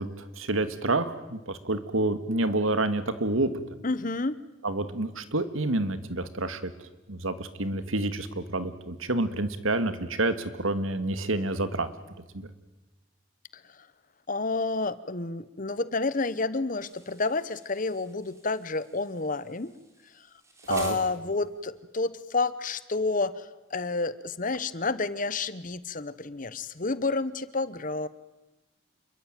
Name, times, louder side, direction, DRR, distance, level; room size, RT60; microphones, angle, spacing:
voice 1, 0.0-3.5 4.6-6.7 7.1-11.9 12.3-12.5 20.7-21.0, right 2 dB, 85° right, 11 dB, 2.1 m, -28 dB
voice 2, 3.8-4.4 14.3-19.7 20.2-20.3 20.7-28.1, left 3 dB, 40° left, 15 dB, 1.1 m, -30 dB
Insect, 16.8-21.8, right 2 dB, 15° right, 3.6 m, -50 dB
28.0 x 22.5 x 9.2 m, 1.1 s
head